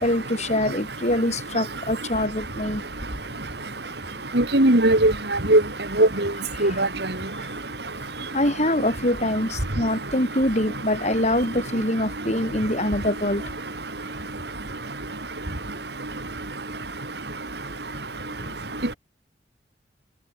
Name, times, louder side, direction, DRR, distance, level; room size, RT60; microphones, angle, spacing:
voice 1, 0.0-2.8 6.6-6.8 8.3-13.5, left 1 dB, 35° left, 6.8 m, -24 dB
voice 2, 4.3-5.1 5.5-5.6 6.0-6.1 6.6-6.9, right 1 dB, 60° right, 2.9 m, -16 dB
head